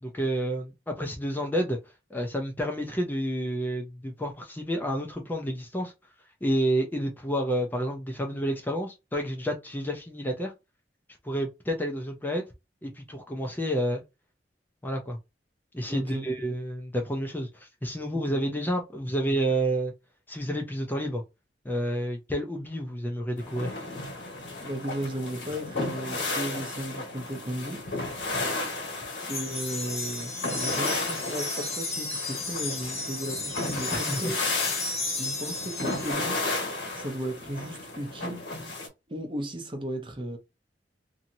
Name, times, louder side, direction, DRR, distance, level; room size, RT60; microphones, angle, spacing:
voice 1, 0.0-1.8 2.1-5.9 6.4-10.5 11.2-12.4 12.8-14.0 14.8-15.2 15.7-19.9 20.3-21.2 21.6-23.7 34.1-34.2, equal, 10° left, 0.5 m, -29 dB
voice 2, 15.9-16.3 18.1-18.4 24.6-28.1 29.3-34.4 35.2-36.4 36.9-38.5 39.1-40.4, right 1 dB, 30° right, 0.7 m, -35 dB
sound 1, 23.4-38.9, left 2 dB, 85° left, 1.3 m, -33 dB
sound 2, 29.3-36.1, left 3 dB, 35° left, 1.2 m, -34 dB
2.8 x 2.7 x 2.6 m
head